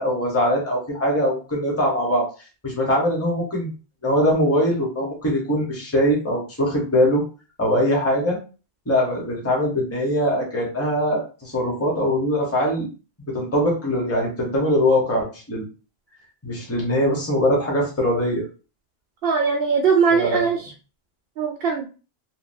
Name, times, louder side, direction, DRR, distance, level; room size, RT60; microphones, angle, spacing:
voice 1, 0.0-2.3 2.6-3.7 4.0-7.2 7.6-8.4 8.9-12.9 13.3-15.6 16.4-18.5 20.1-20.5, equal, 15° left, -3 dB, 1.0 m, -22 dB
voice 2, 19.2-20.7 21.4-21.8, right 5 dB, 65° right, 3 dB, 0.7 m, -20 dB
2.8 x 2.6 x 2.6 m, 0.34 s
omnidirectional pair, 1.1 m